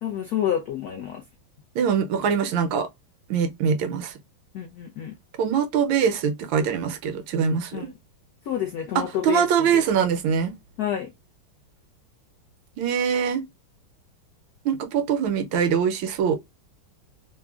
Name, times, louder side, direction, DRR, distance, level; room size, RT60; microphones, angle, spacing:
voice 1, 0.0-1.2 4.5-5.1 7.7-7.9 8.4-9.8 10.8-11.1, left 10 dB, 85° left, 0.8 m, -29 dB
voice 2, 1.8-2.9 3.3-4.1 5.4-7.9 8.9-10.5 12.8-13.4 14.6-16.4, right 7 dB, 75° right, 1.3 m, -23 dB
3.7 x 2.1 x 2.3 m
omnidirectional pair, 2.2 m